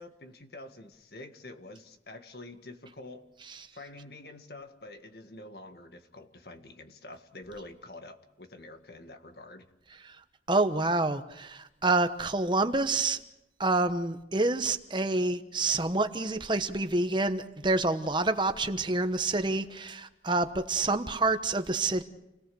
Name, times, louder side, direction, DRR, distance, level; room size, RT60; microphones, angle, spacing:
voice 1, 0.0-3.3 3.7-9.7, left 2 dB, 60° left, 7 dB, 1.8 m, -47 dB
voice 2, 10.5-13.2 13.6-22.0, right 2 dB, 25° right, 9 dB, 1.1 m, -27 dB
29.5 x 18.5 x 7.0 m, 0.91 s
head